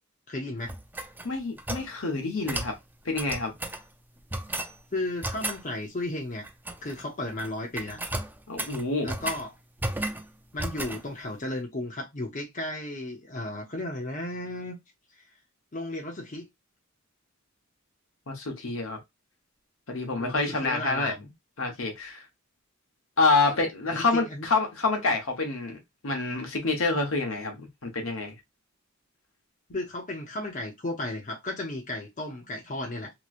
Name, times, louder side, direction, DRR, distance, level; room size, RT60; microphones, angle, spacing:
voice 1, 0.3-0.7 4.9-6.4 6.8-8.0 9.0-9.5 10.5-14.8 15.1-15.2 15.7-16.5 20.2-21.3 23.9-24.5 29.7-33.1, left 1 dB, 35° left, 0.8 m, -34 dB
sound 1, 0.7-1.9 2.5-2.8 3.2-3.8 4.3-4.7 5.2-5.6 6.4-7.0 7.3-7.5 7.8-9.4 9.8-10.3 10.6-11.0, right 1 dB, 10° right, 0.4 m, -34 dB
voice 2, 1.2-2.7 3.0-3.5 8.5-9.1 18.3-19.0 19.9-21.1 21.6-22.2 23.2-25.8 26.0-28.3, left 3 dB, 70° left, 1.1 m, -27 dB
3.0 x 2.9 x 2.4 m
head